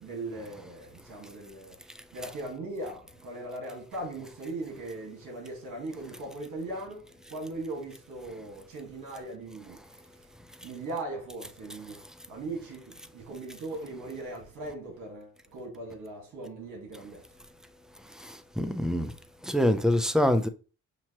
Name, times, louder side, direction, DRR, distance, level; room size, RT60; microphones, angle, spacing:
voice 1, 0.0-1.7 2.1-7.0 7.3-9.8 10.6-11.9 12.3-12.8 13.1-15.3 15.5-17.2, right 2 dB, 80° right, 1.7 m, -39 dB
voice 2, 18.0-19.1 19.4-20.5, left 1 dB, ahead, 0.5 m, -26 dB
6.0 x 2.8 x 2.9 m
cardioid pair, 90°, 30 cm